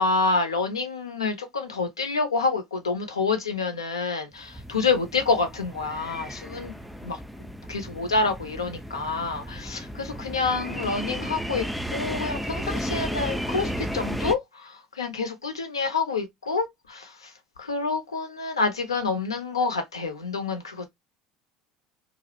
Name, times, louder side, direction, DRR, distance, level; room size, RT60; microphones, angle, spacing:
voice 1, 0.0-6.7 7.0-7.2 7.7-17.3 17.6-20.9, left 4 dB, 85° left, 0.5 m, -28 dB
sound 1, 4.3-14.3, equal, ahead, 0.3 m, -34 dB
2.3 x 2.0 x 2.8 m
figure-of-eight pair, 70°, 3 cm